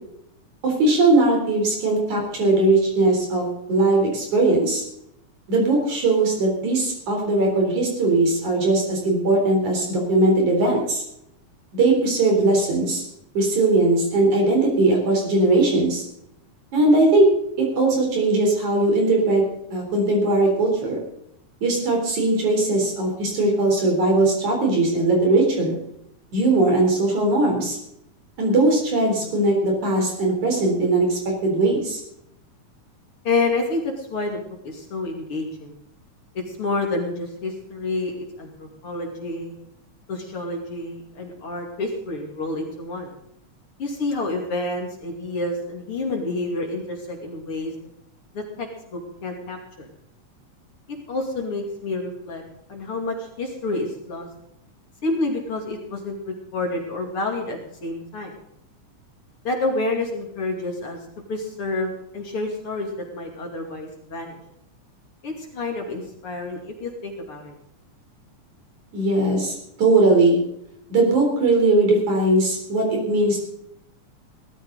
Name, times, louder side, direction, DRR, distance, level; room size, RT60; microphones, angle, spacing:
voice 1, 0.6-4.8 5.5-11.0 11.7-13.0 13.4-16.0 16.7-17.3 17.6-19.4 19.7-21.0 21.6-25.8 26.3-27.8 28.4-32.0 68.9-70.4 70.9-73.4, right 2 dB, 65° right, 0 dB, 5.3 m, -19 dB
voice 2, 33.2-35.7 36.5-39.5 40.1-43.1 43.8-47.7 48.3-49.9 51.1-52.4 52.7-54.3 55.0-58.3 59.4-61.0 61.3-64.4 65.2-67.5, left 2 dB, 45° left, 1 dB, 3.2 m, -29 dB
18.0 x 13.5 x 4.0 m, 0.77 s
omnidirectional pair, 3.7 m